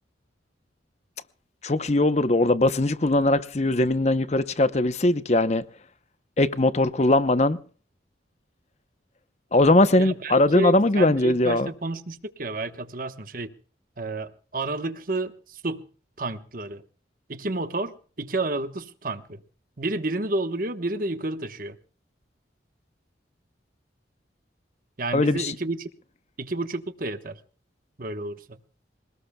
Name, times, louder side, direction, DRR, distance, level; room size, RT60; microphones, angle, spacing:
voice 1, 1.6-5.6 6.4-7.6 9.5-11.7 25.1-25.5, left 2 dB, 35° left, 0.8 m, -20 dB
voice 2, 10.0-13.5 14.0-15.8 16.2-16.8 17.3-19.4 19.8-21.8 25.0-25.9 26.4-27.4 28.0-28.6, right 2 dB, 50° right, 1.2 m, -30 dB
26.5 x 18.5 x 2.3 m
head